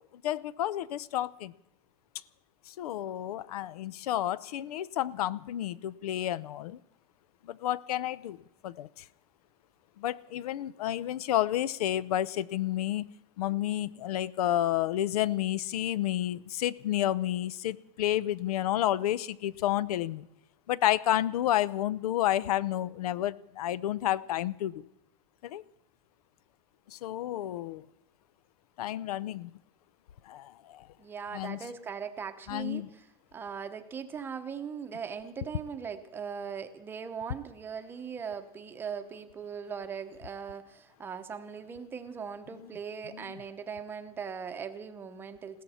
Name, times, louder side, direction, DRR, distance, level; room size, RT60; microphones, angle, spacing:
voice 1, 0.2-1.5 2.7-6.8 7.4-8.4 8.6-9.0 10.0-13.1 13.4-20.3 20.7-24.9 25.4-25.6 26.9-27.8 28.8-29.5 30.3-30.9 31.3-31.7 32.5-32.9 43.1-43.4, left 13 dB, 80° left, 0.7 m, -30 dB
voice 2, 31.0-33.0 33.3-45.6, right 6 dB, 10° right, 0.8 m, -39 dB
20.5 x 16.5 x 4.3 m
supercardioid pair, 175°, 19 cm